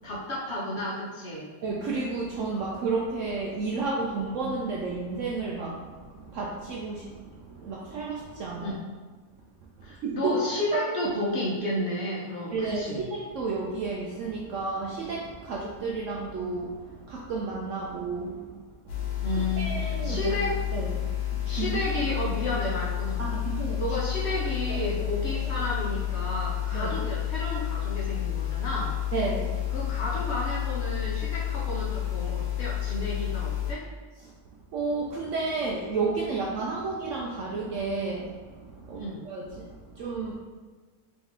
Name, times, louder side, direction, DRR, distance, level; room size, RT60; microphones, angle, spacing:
voice 1, 0.0-1.5 8.6-8.7 9.8-13.1 19.2-20.5 21.5-23.3 23.8-28.9 29.7-33.8 38.9-39.2, left 1 dB, 50° left, -6 dB, 1.0 m, -32 dB
voice 2, 1.6-8.8 10.0-10.3 10.7-10.8 12.5-18.5 18.8-19.2 19.6-20.3 20.7-20.9 21.3-21.8 23.2-23.8 24.7-24.9 26.7-26.9 29.1-29.5 34.7-40.3, right 4 dB, 70° right, -3 dB, 0.7 m, -32 dB
sound 1, 18.9-33.7, left 12 dB, 85° left, 1.4 m, -30 dB
3.6 x 3.1 x 3.5 m, 1.4 s
omnidirectional pair, 1.7 m